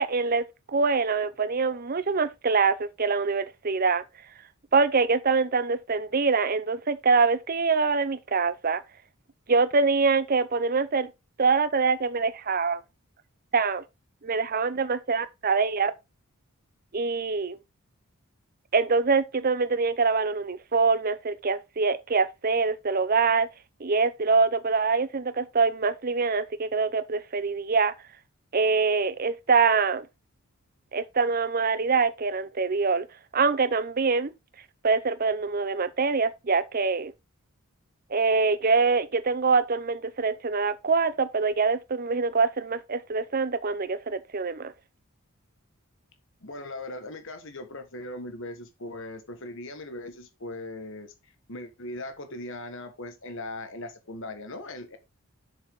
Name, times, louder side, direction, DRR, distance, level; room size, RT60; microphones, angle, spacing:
voice 1, 0.0-4.0 4.7-8.8 9.5-11.1 11.4-12.8 13.5-13.8 14.2-15.9 16.9-17.6 18.7-23.5 23.8-27.9 28.5-30.1 30.9-33.1 33.3-34.3 34.8-37.1 38.1-44.7, right 4 dB, 40° right, 0.7 m, -24 dB
voice 2, 46.4-51.1 51.5-55.0, left 2 dB, 60° left, 1.5 m, -39 dB
7.3 x 6.8 x 3.7 m
head